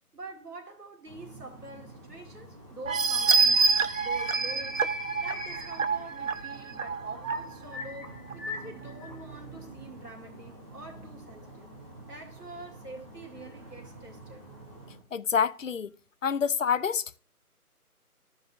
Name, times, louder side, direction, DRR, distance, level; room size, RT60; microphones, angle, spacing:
voice 1, 0.1-3.7 4.0-4.9 5.2-11.7 12.1-14.4, right 2 dB, 85° right, 2.0 m, -46 dB
sound 1, 1.1-15.0, equal, 15° right, 1.3 m, -43 dB
sound 2, 2.9-7.3 7.8-7.9 8.3-8.4, right 5 dB, 60° right, 0.6 m, -26 dB
voice 2, 15.1-15.9 16.2-17.2, left 7 dB, 60° left, 0.5 m, -27 dB
14.5 x 5.4 x 2.5 m
figure-of-eight pair, 160°, 45 cm